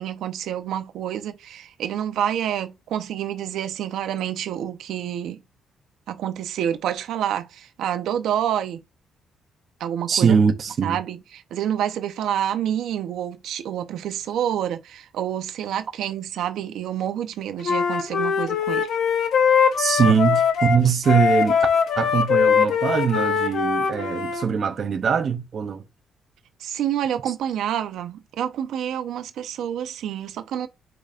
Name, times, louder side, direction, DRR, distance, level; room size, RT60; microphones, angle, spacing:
voice 1, 0.0-5.4 6.1-8.8 9.8-10.4 10.8-18.9 19.9-20.1 26.6-30.7, right 10 dB, 75° right, 0.9 m, -28 dB
voice 2, 10.1-11.0 19.8-21.6 22.0-25.8 27.3-27.4, right 6 dB, 40° right, 0.7 m, -22 dB
Wind instrument woodwind instrument, 17.6-24.5, left 6 dB, 65° left, 1.0 m, -21 dB
7.8 x 5.1 x 2.5 m
cardioid pair, 150°, 0 cm